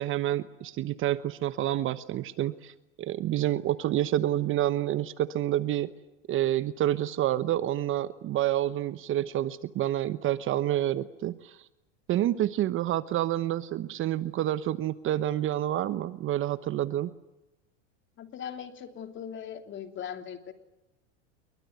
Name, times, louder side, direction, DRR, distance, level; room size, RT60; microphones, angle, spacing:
voice 1, 0.0-5.9 6.3-11.6 12.1-17.1, right 13 dB, 35° right, 14 dB, 1.0 m, -28 dB
voice 2, 18.2-20.5, left 8 dB, 35° left, 7 dB, 3.1 m, -39 dB
27.0 x 23.0 x 9.3 m, 0.94 s
supercardioid pair, 115°, 35 cm